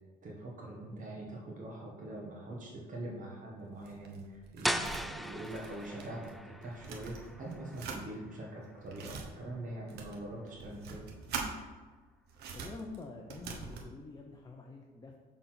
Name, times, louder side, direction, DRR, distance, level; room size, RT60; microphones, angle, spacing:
voice 1, 0.2-11.0, right 1 dB, 50° right, -3 dB, 1.6 m, -43 dB
sound 1, 3.6-6.3 6.6-8.0 8.6-9.3 9.9-11.5 12.3-13.9, right 5 dB, 75° right, 1.2 m, -43 dB
sound 2, 4.6-10.3, equal, ahead, 0.3 m, -40 dB
voice 2, 12.5-15.1, left 3 dB, 25° left, 1 dB, 0.7 m, -47 dB
6.3 x 4.0 x 5.9 m, 1.4 s
cardioid pair, 110°, 17 cm